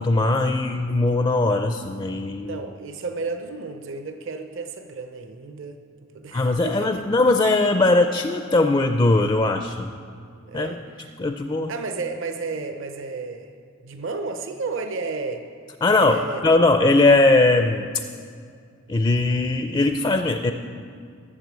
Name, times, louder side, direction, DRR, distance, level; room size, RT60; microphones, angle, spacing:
voice 1, 0.0-2.6 6.3-9.9 10.5-10.7 11.2-11.7 15.8-16.2 16.4-17.9 18.9-20.5, left 2 dB, 20° left, 6 dB, 0.4 m, -20 dB
voice 2, 2.4-5.8 6.1-7.1 10.5-11.2 11.7-13.5 13.8-15.4 16.0-16.4, right 4 dB, 60° right, 7 dB, 0.7 m, -32 dB
12.5 x 7.6 x 7.5 m, 2.3 s
head